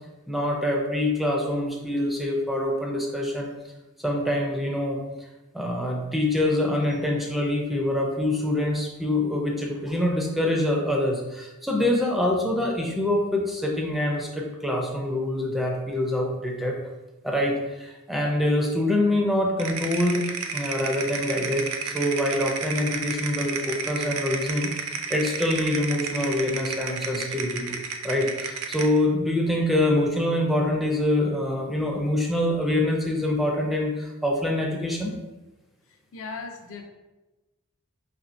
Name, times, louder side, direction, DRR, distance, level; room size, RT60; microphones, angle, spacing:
voice 1, 0.3-3.5 4.0-5.3 5.5-16.8 17.2-20.2 20.5-24.7 25.1-35.1, left 1 dB, ahead, -1 dB, 0.4 m, -25 dB
sound 1, 19.6-29.0, right 6 dB, 65° right, 0.4 m, -32 dB
voice 2, 35.9-36.9, left 4 dB, 65° left, 3 dB, 0.5 m, -38 dB
4.2 x 3.0 x 2.6 m, 1.1 s
head